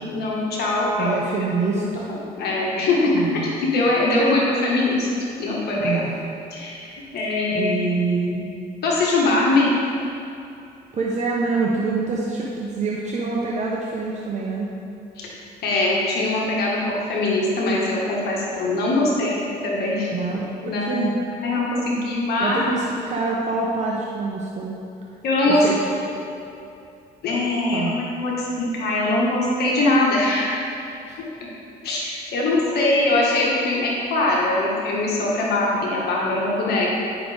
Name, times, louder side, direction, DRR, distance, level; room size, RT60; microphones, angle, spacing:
voice 1, 0.1-1.1 1.7-1.8 2.4-5.1 5.4-6.0 6.5-6.9 7.1-7.8 8.8-9.7 15.2-15.3 15.6-21.0 21.4-22.6 25.2-25.7 27.2-30.6 31.8-36.9, left 2 dB, 70° left, -4 dB, 1.6 m, -22 dB
voice 2, 1.0-2.1 3.1-3.5 5.7-6.2 7.5-8.6 10.9-14.7 20.1-21.1 22.4-24.8 25.4-25.8 27.7-27.9 31.1-31.2, right 4 dB, 45° right, -4 dB, 1.0 m, -26 dB
10.5 x 5.9 x 3.5 m, 2.6 s
cardioid pair, 95°, 17 cm